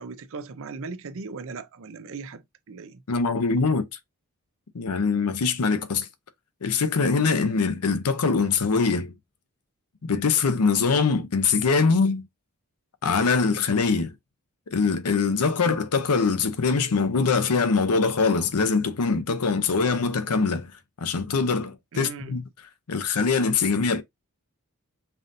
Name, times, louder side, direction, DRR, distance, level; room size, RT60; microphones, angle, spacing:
voice 1, 0.0-3.0 21.9-22.3, right 4 dB, 60° right, 0.5 m, -38 dB
voice 2, 3.1-3.9 4.7-6.1 6.6-9.1 10.0-12.3 13.0-14.1 14.7-20.7 21.0-22.4 22.9-24.0, left 4 dB, 85° left, 0.7 m, -23 dB
5.5 x 2.7 x 2.6 m
head